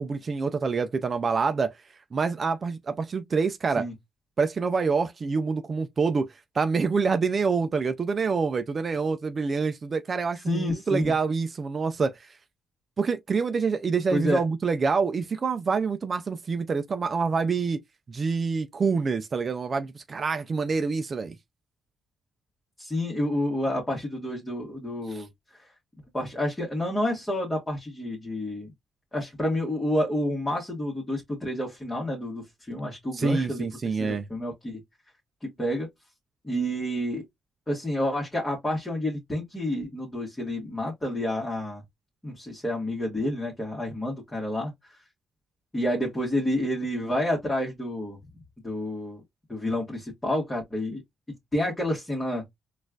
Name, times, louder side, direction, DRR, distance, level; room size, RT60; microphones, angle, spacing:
voice 1, 0.0-1.7 2.1-3.9 4.4-6.3 6.5-12.4 13.0-17.8 18.1-21.3 25.1-25.3 33.1-34.2, right 5 dB, 40° right, 0.4 m, -26 dB
voice 2, 10.5-11.1 14.1-14.4 22.8-25.3 26.1-28.7 29.1-33.6 34.0-34.8 35.4-35.9 36.4-37.2 37.7-41.8 42.2-44.7 45.7-48.2 48.6-49.2 49.5-51.0 51.5-52.4, left 1 dB, 15° left, 1.4 m, -29 dB
4.2 x 2.4 x 2.3 m
cardioid pair, 90°, 0 cm